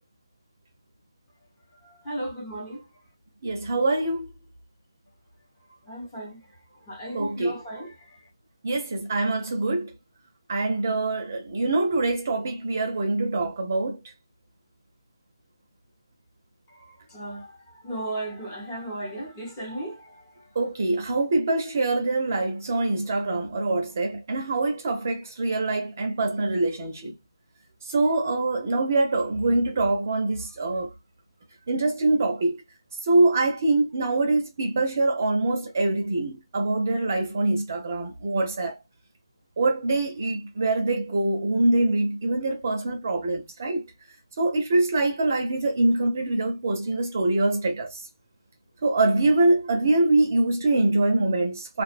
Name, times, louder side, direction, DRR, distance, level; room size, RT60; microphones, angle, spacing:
voice 1, 1.8-2.8 5.9-6.4 6.9-8.2 16.7-20.3, right 1 dB, 15° left, 0.8 m, -36 dB
voice 2, 3.4-4.3 7.1-7.6 8.6-9.9 10.5-14.0 20.6-27.1 27.9-30.9 31.7-32.6 33.1-38.8 39.6-43.8 44.4-48.0 48.8-51.8, right 2 dB, 35° right, 0.6 m, -24 dB
2.3 x 2.2 x 2.4 m
figure-of-eight pair, 170°, 3 cm